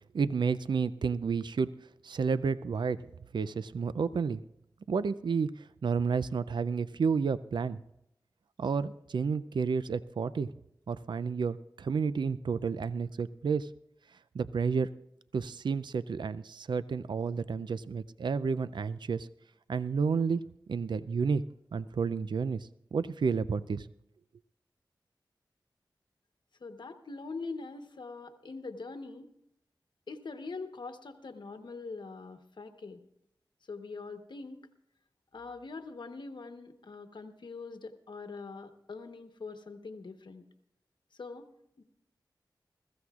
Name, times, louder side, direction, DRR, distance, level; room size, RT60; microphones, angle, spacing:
voice 1, 0.1-1.7 2.0-3.0 3.3-4.4 4.9-7.8 8.6-10.5 10.9-13.7 14.3-14.9 15.3-19.3 19.7-21.4 21.7-23.9, right 5 dB, 75° right, 15 dB, 0.4 m, -31 dB
voice 2, 26.6-29.3 30.1-33.0 33.7-34.7 35.3-40.4 41.1-41.5 41.8-41.9, left 4 dB, 75° left, 7 dB, 1.0 m, -43 dB
21.5 x 14.5 x 2.4 m, 0.80 s
cardioid pair, 50°, 8 cm